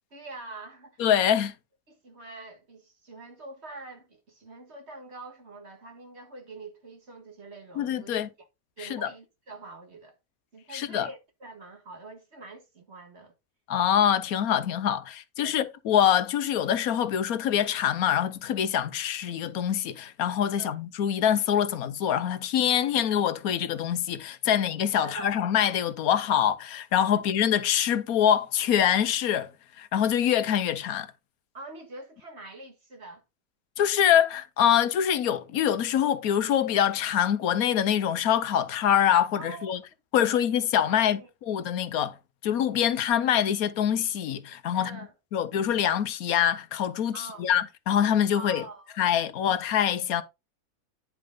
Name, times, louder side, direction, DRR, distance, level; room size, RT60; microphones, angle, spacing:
voice 1, 0.1-1.0 1.9-8.1 8.8-10.2 10.5-13.3 15.4-15.6 20.6-20.8 25.0-25.4 27.1-27.2 31.5-33.2 39.3-39.7 40.2-40.5 40.9-41.3 44.7-45.1 47.1-47.5 48.3-49.0, right 2 dB, 50° right, 2.2 m, -44 dB
voice 2, 1.0-1.5 7.8-8.3 8.8-9.1 10.7-11.1 13.7-29.5 29.8-31.1 33.8-39.8 40.1-42.1 42.4-45.0 45.3-48.6 49.0-50.2, left 9 dB, 90° left, 1.3 m, -25 dB
9.8 x 5.2 x 3.8 m
omnidirectional pair, 1.5 m